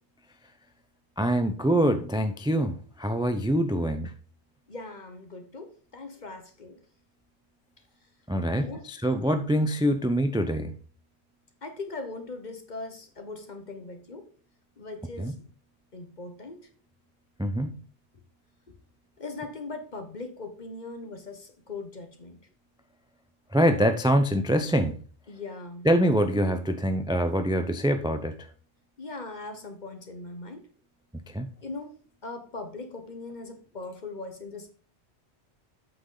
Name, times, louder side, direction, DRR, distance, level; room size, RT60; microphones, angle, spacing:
voice 1, 1.2-4.1 8.3-10.8 15.2-15.3 17.4-17.8 23.5-25.0 25.8-28.4 31.3-31.5, equal, 5° right, 0.5 m, -25 dB
voice 2, 4.7-6.8 8.5-8.9 11.6-14.3 14.8-15.4 15.9-16.6 19.2-22.4 23.8-23.9 25.3-25.9 29.0-30.6 31.6-31.9 32.2-34.7, left 3 dB, 45° left, 1.4 m, -40 dB
8.3 x 6.0 x 3.9 m
omnidirectional pair, 1.1 m